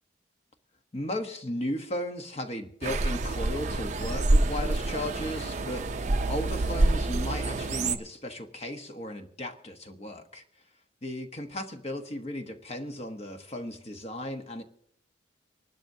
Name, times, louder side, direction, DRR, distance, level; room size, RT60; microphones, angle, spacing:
voice 1, 0.9-5.9 6.3-10.4 11.0-14.6, left 1 dB, 35° left, 5 dB, 1.1 m, -35 dB
sound 1, 2.8-8.0, right 2 dB, 40° right, 0.6 m, -27 dB
25.0 x 12.5 x 2.8 m, 0.66 s
head